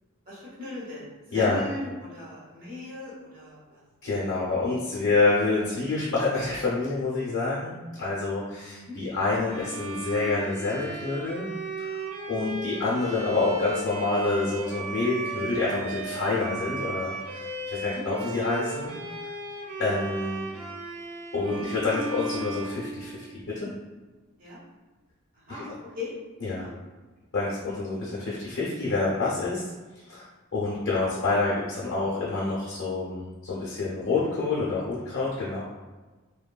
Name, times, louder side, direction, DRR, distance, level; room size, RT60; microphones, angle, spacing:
voice 1, 0.3-1.1 1.3-3.8 8.7-9.0 17.8-18.0 21.9-22.1 22.4-22.5 24.4-24.6 25.3-26.1 26.5-26.7, left 2 dB, 45° right, -8 dB, 1.0 m, -39 dB
voice 2, 1.3-1.9 4.0-11.5 11.8-11.9 12.3-18.9 19.8-20.5 21.3-23.7 25.5-25.6 26.4-26.6 27.3-29.6 30.1-30.3 30.5-35.6, left 3 dB, 70° left, -6 dB, 0.6 m, -27 dB
Bowed string instrument, 9.5-23.6, right 2 dB, 75° right, 0.4 m, -36 dB
3.0 x 2.2 x 2.3 m, 1.3 s
head